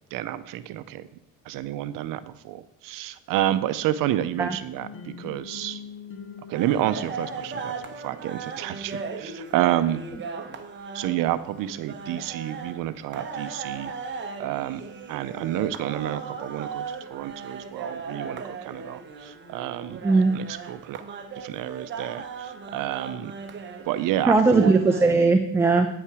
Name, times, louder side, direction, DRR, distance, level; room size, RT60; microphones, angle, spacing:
voice 1, 0.1-1.1 1.4-5.8 6.5-10.0 10.9-14.8 15.1-20.0 20.3-21.0 21.3-23.3 23.8-24.7, right 13 dB, 70° right, 12 dB, 0.6 m, -29 dB
sound 1, 4.8-8.7, left 5 dB, 35° left, 1.4 m, -43 dB
sound 2, 6.5-25.2, right 5 dB, 35° right, 0.9 m, -37 dB
voice 2, 20.0-20.3 24.3-25.9, right 3 dB, 10° right, 7 dB, 0.4 m, -19 dB
9.5 x 8.7 x 4.8 m, 0.79 s
cardioid pair, 145°, 34 cm